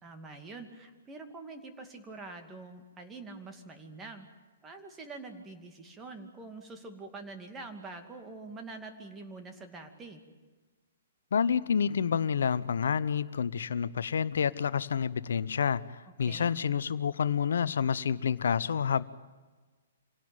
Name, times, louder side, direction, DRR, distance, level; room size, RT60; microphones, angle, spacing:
voice 1, 0.0-4.3 4.6-10.2 16.2-16.5, right 3 dB, 15° right, 5 dB, 2.5 m, -45 dB
voice 2, 11.3-15.8 16.2-19.0, left 7 dB, 65° left, 17 dB, 0.9 m, -28 dB
26.0 x 17.5 x 9.2 m, 1.3 s
figure-of-eight pair, 125°, 0 cm